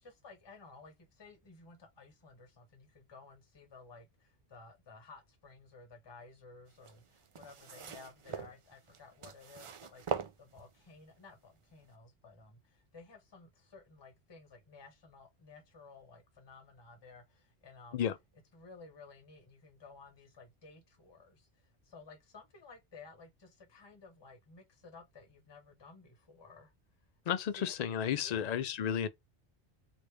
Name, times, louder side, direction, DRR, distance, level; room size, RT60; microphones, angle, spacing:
voice 1, 0.0-18.0 18.5-26.7 27.3-27.7 28.2-28.6, left 4 dB, 25° left, 0.9 m, -55 dB
sound 1, 6.7-11.0 11.7-11.8, right 6 dB, 55° right, 0.3 m, -42 dB
voice 2, 27.3-29.1, left 8 dB, 55° left, 0.4 m, -32 dB
3.3 x 2.6 x 3.0 m
omnidirectional pair, 1.1 m